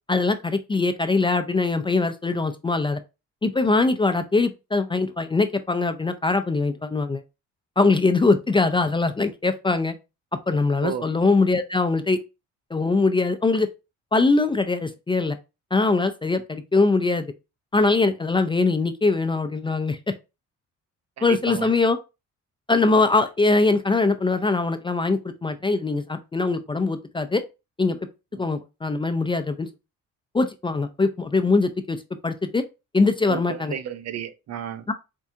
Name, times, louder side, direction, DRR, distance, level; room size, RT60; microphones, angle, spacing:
voice 1, 0.1-3.0 3.4-7.2 7.8-9.9 10.5-12.2 12.7-13.7 14.1-15.4 15.7-17.3 17.7-20.1 21.2-22.0 22.7-27.4 27.8-28.1 28.4-29.7 30.3-32.6 32.9-33.7 34.9-35.0, left 3 dB, 15° left, 0.3 m, -22 dB
voice 2, 21.2-21.7 33.3-34.9, right 8 dB, 60° right, 0.5 m, -32 dB
4.4 x 2.4 x 2.6 m
cardioid pair, 90°, 30 cm